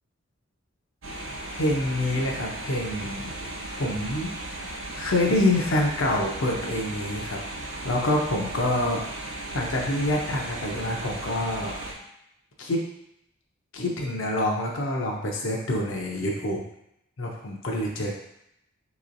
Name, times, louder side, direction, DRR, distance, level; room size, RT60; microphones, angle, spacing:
sound 1, 1.0-11.9, right 1 dB, 80° right, 0.7 m, -36 dB
voice 1, 1.6-3.3 3.8-4.3 5.0-7.4 7.8-9.0 9.3-11.7 12.6-12.8 13.7-16.6 17.2-18.1, left 1 dB, 80° left, -1 dB, 0.6 m, -26 dB
3.7 x 2.9 x 2.5 m, 0.79 s
head